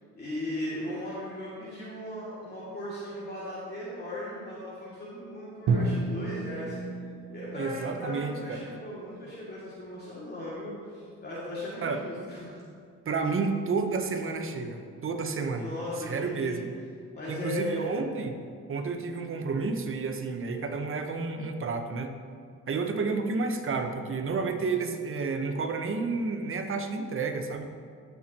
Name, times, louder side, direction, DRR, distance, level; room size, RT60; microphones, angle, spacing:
voice 1, 0.1-6.8 7.3-12.6 15.5-16.6 17.1-18.0, left 1 dB, 35° left, -9 dB, 2.4 m, -37 dB
Drum, 5.7-9.7, right 3 dB, 85° right, 1.1 m, -32 dB
voice 2, 7.5-8.6 11.8-12.0 13.0-15.7 16.0-16.7 17.3-18.4 18.7-22.1 22.7-27.7, right 4 dB, 45° right, 5 dB, 1.0 m, -31 dB
15.0 x 6.0 x 3.0 m, 2.2 s
cardioid pair, 90°, 30 cm